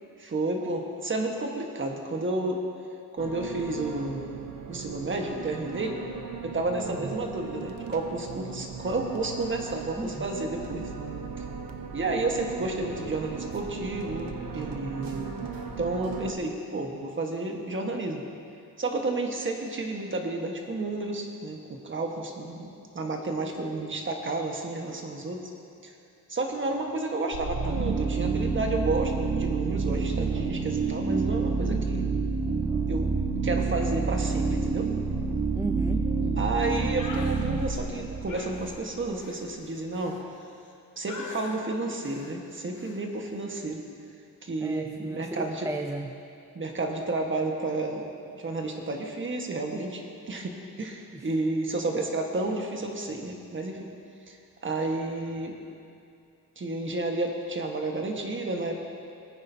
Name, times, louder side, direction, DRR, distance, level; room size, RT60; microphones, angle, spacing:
voice 1, 0.2-2.6 3.1-4.3 4.7-6.0 6.4-10.9 11.4-11.5 11.9-15.5 15.8-18.2 18.8-25.4 25.8-25.9 26.3-32.1 32.9-33.1 33.4-34.9 36.4-40.2 41.0-43.8 44.4-45.7 46.5-53.9 54.3-54.4 54.6-55.6 56.6-58.8, right 2 dB, 35° right, 2 dB, 1.4 m, -31 dB
sound 1, 3.2-16.3, right 5 dB, 85° right, 1.0 m, -38 dB
voice 2, 10.0-10.3 35.5-36.4 44.6-46.1 51.1-51.3, right 2 dB, 10° right, 4 dB, 0.4 m, -35 dB
sound 2, 27.3-39.1, right 4 dB, 65° right, 1.4 m, -28 dB
sound 3, 37.0-37.4 38.3-40.7 41.1-41.6 42.0-42.3 42.7-43.0, left 3 dB, 60° left, 1.6 m, -43 dB
19.0 x 9.8 x 2.8 m, 2.6 s
cardioid pair, 105°, 34 cm